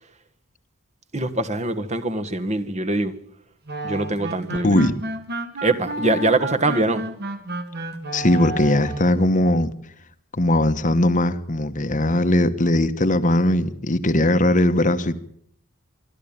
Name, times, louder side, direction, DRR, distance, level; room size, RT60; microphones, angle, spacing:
voice 1, 1.1-3.1 3.8-4.8 5.6-7.0, right 2 dB, 30° right, 1.5 m, -23 dB
sound 1, 3.7-9.2, right 2 dB, 50° right, 2.0 m, -31 dB
voice 2, 4.6-4.9 8.1-9.7 10.3-15.2, left 1 dB, 35° left, 1.1 m, -19 dB
25.5 x 12.5 x 8.9 m
head